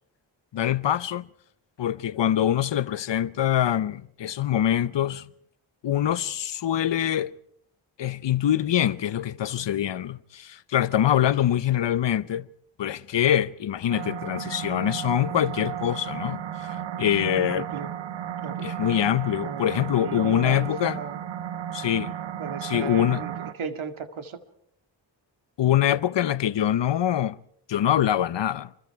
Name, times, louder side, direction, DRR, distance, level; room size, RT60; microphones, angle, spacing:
voice 1, 0.5-1.3 1.8-5.3 5.8-7.3 8.0-12.5 12.8-17.7 18.6-21.0 21.7-22.1 22.6-23.3 25.6-27.4 27.7-28.7, left 11 dB, 65° left, 0.8 m, -24 dB
sound 1, 13.9-23.5, right 10 dB, 70° right, 1.1 m, -34 dB
voice 2, 17.2-17.9 18.4-18.6 19.4-19.6 20.0-21.2 22.4-24.4, right 6 dB, 85° right, 2.2 m, -36 dB
26.0 x 24.5 x 4.7 m
cardioid pair, 80°, 47 cm